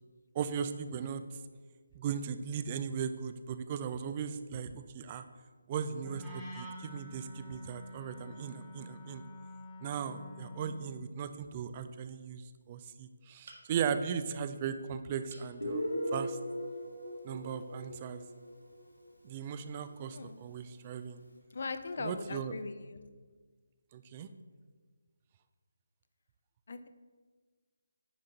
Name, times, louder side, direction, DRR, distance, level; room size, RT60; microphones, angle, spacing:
voice 1, 0.3-1.2 2.0-5.2 5.7-9.2 9.8-16.4 17.2-18.2 19.2-21.2 22.0-22.5 23.9-24.3, right 7 dB, 25° right, 10 dB, 0.3 m, -37 dB
Wind instrument woodwind instrument, 6.0-10.8, equal, ahead, 1.0 m, -47 dB
sound 1, 13.4-14.0 15.3-15.6 16.1-16.2 16.6-16.7, right 2 dB, 55° right, 1.4 m, -54 dB
Guitar, 15.6-19.1, equal, 85° left, 1.5 m, -38 dB
voice 2, 21.5-23.0 26.7-26.9, left 4 dB, 50° left, 10 dB, 0.5 m, -40 dB
9.8 x 3.7 x 3.9 m, 1.5 s
figure-of-eight pair, 150°, 0 cm